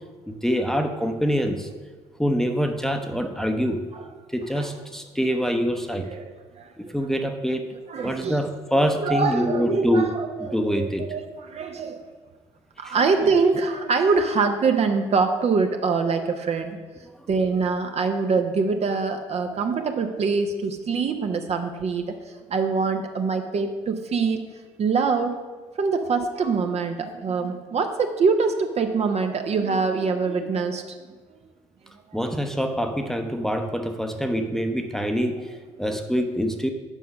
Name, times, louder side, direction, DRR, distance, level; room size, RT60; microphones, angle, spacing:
voice 1, 0.3-1.7 2.2-3.9 4.3-6.1 6.8-7.6 8.0-10.1 10.4-11.1 12.8-13.0 17.1-17.3 32.1-36.7, equal, ahead, 5 dB, 0.8 m, -25 dB
voice 2, 7.9-8.5 9.0-12.0 12.8-16.8 17.3-22.1 22.5-24.5 24.8-25.4 25.8-30.8, right 4 dB, 40° right, 6 dB, 0.7 m, -24 dB
7.3 x 5.6 x 5.3 m, 1.3 s
figure-of-eight pair, 50°, 16 cm